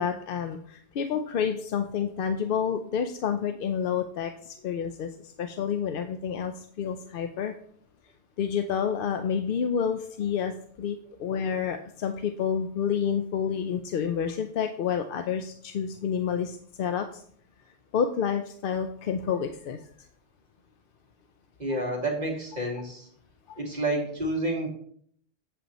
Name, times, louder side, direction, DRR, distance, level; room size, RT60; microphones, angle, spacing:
voice 1, 0.0-7.5 8.4-10.5 10.8-17.2 17.9-19.8 21.7-21.8 23.5-23.6, left 7 dB, 60° left, 7 dB, 0.7 m, -29 dB
voice 2, 21.6-23.1 23.6-24.7, right 1 dB, 40° right, 0 dB, 2.1 m, -29 dB
7.9 x 7.8 x 3.0 m, 0.62 s
omnidirectional pair, 1.1 m